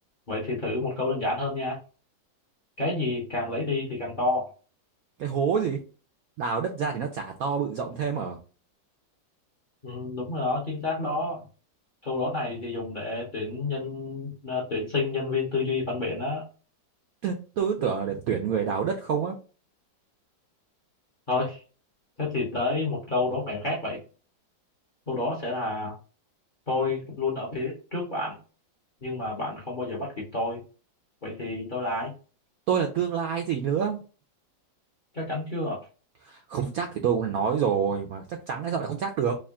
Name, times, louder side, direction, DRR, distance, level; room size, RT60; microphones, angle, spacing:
voice 1, 0.3-1.8 2.8-4.5 9.8-11.4 12.0-16.5 21.3-21.6 22.2-24.0 25.1-25.9 26.7-28.4 29.0-30.6 31.2-32.1 35.1-35.8, left 3 dB, 40° left, -3 dB, 0.7 m, -29 dB
voice 2, 5.2-5.8 6.4-8.4 17.2-19.4 32.7-34.0 36.3-39.4, right 7 dB, 75° right, 4 dB, 0.8 m, -27 dB
3.5 x 2.5 x 3.5 m, 0.36 s
omnidirectional pair, 2.0 m